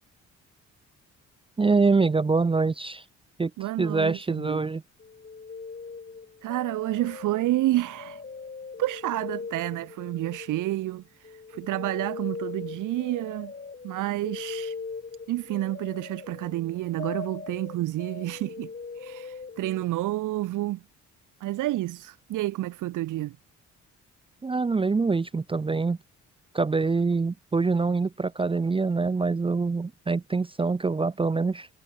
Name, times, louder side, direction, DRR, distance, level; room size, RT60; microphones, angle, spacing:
voice 1, 1.6-3.0 3.4-3.5 3.8-4.8 24.4-26.0 26.5-31.7, right 4 dB, 20° right, 0.6 m, -25 dB
voice 2, 3.6-4.7 6.4-8.2 8.8-13.5 13.8-14.8 15.3-20.8 21.4-23.4, right 16 dB, 90° right, 3.7 m, -29 dB
sound 1, 5.0-11.0 11.2-19.9, left 4 dB, 30° left, 5.8 m, -40 dB
cardioid pair, 90°, 30 cm